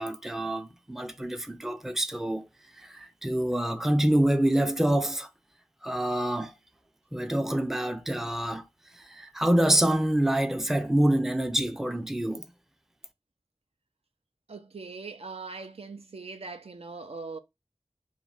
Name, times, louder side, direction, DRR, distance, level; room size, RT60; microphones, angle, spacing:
voice 1, 0.0-2.5 2.8-5.3 5.8-6.5 7.1-8.6 9.1-12.5, right 1 dB, 5° right, 0.4 m, -26 dB
voice 2, 14.5-17.4, right 4 dB, 70° right, 0.4 m, -41 dB
2.4 x 2.1 x 3.2 m
wide cardioid pair, 40°, 11 cm